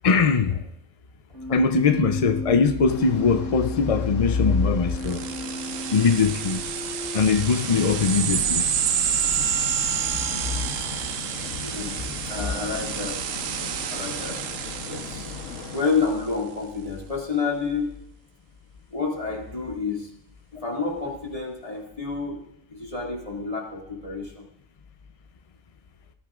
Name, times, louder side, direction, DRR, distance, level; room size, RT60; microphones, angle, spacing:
voice 1, 0.0-0.6 1.5-5.2 5.9-6.6 7.1-8.6, left 5 dB, 55° left, 0.3 m, -21 dB
Keyboard (musical), 1.3-7.3, left 2 dB, 50° right, 2.9 m, -34 dB
sound 1, 2.9-15.8, left 5 dB, 75° left, 1.3 m, -38 dB
sound 2, 5.0-16.1, right 8 dB, 80° right, 1.1 m, -29 dB
voice 2, 11.6-13.2 13.9-14.4 14.9-15.4 15.7-18.0 18.9-20.1 20.5-22.4 22.7-24.4, left 4 dB, 25° left, 2.4 m, -29 dB
18.0 x 14.0 x 2.4 m
omnidirectional pair, 1.3 m